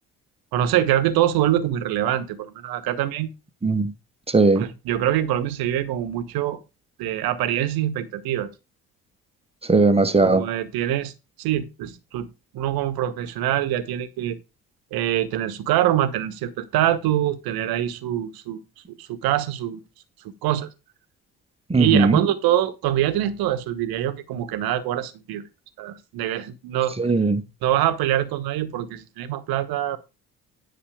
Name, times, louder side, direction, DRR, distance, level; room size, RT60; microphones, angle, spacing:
voice 1, 0.5-3.3 4.5-6.6 7.0-8.5 10.2-11.1 11.4-12.3 12.5-14.4 14.9-18.6 19.0-19.8 20.4-20.7 21.7-25.5 25.8-27.0 27.6-30.0, right 12 dB, 55° right, 1.2 m, -24 dB
voice 2, 3.6-3.9 4.3-4.7 9.7-10.4 21.7-22.2 27.0-27.4, right 3 dB, 15° right, 1.2 m, -18 dB
10.0 x 6.0 x 4.8 m
figure-of-eight pair, 50°, 45 cm